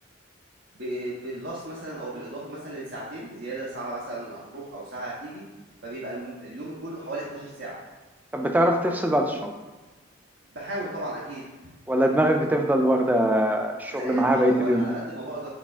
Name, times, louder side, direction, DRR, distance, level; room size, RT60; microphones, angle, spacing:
voice 1, 0.7-5.4 5.8-7.8 10.5-11.4 13.9-15.5, right 1 dB, 70° right, -7 dB, 0.8 m, -35 dB
voice 2, 8.3-9.5 11.9-14.8, right 1 dB, 10° right, 4 dB, 0.3 m, -22 dB
4.8 x 4.1 x 2.3 m, 1.2 s
head